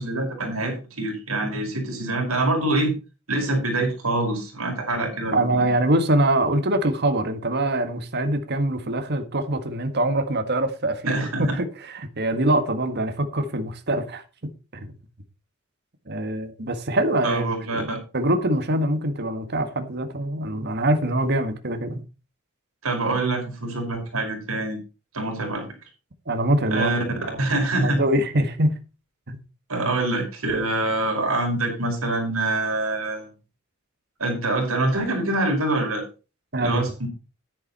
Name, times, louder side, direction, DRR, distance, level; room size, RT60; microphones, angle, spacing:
voice 1, 0.0-2.9 3.3-5.7 11.1-11.6 17.2-18.0 22.8-24.8 25.1-25.6 26.7-27.0 27.4-28.0 29.7-33.3 34.2-36.0 36.6-37.1, right 2 dB, 80° right, 5.3 m, -25 dB
voice 2, 5.3-11.2 11.5-14.9 16.1-17.5 17.7-17.8 18.1-22.0 26.3-26.9 27.3-27.4 27.8-28.8 29.3-29.4 36.5-36.9, right 1 dB, 50° right, 1.7 m, -24 dB
10.5 x 10.0 x 4.3 m
head